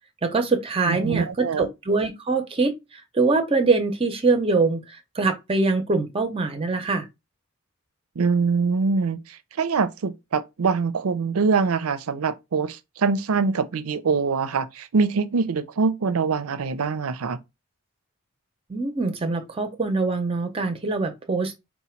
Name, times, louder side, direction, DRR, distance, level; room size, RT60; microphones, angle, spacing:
voice 1, 0.2-7.1 18.7-21.5, right 3 dB, 25° right, 0.5 m, -23 dB
voice 2, 0.9-1.7 8.2-9.2 9.6-17.4, right 5 dB, 90° right, 0.5 m, -24 dB
4.0 x 2.1 x 4.3 m
head